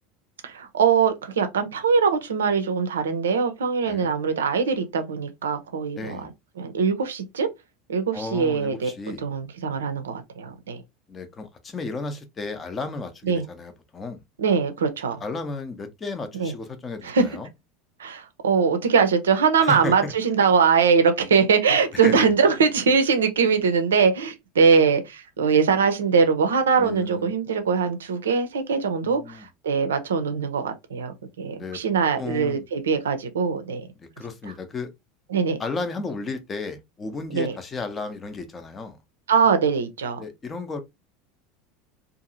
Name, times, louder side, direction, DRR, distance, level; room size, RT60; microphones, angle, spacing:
voice 1, 0.4-6.3 6.6-7.5 7.9-8.9 9.2-10.8 13.2-13.5 14.4-15.2 16.4-16.5 17.0-17.3 18.0-33.9 35.3-35.6 37.3-37.5 39.3-40.2, right 5 dB, 70° right, 0.5 m, -22 dB
voice 2, 6.0-6.3 8.1-9.2 11.1-14.2 15.2-17.5 19.6-20.1 21.9-22.3 26.8-27.3 29.0-29.5 31.6-31.8 32.2-32.7 34.0-34.9 35.6-39.0 40.2-40.8, left 3 dB, 25° left, 0.6 m, -33 dB
2.7 x 2.5 x 2.6 m
figure-of-eight pair, 75°, 0 cm